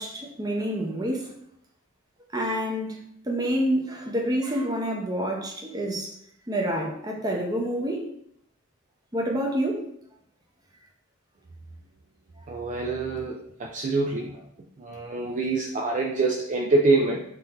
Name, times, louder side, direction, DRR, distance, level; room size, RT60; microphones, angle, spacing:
voice 1, 0.0-1.3 2.3-6.1 6.5-8.0 9.1-9.9, equal, 20° right, 0 dB, 0.7 m, -28 dB
voice 2, 12.5-14.3 14.8-17.2, right 3 dB, 35° right, 0 dB, 0.4 m, -25 dB
3.8 x 2.7 x 4.5 m, 0.70 s
head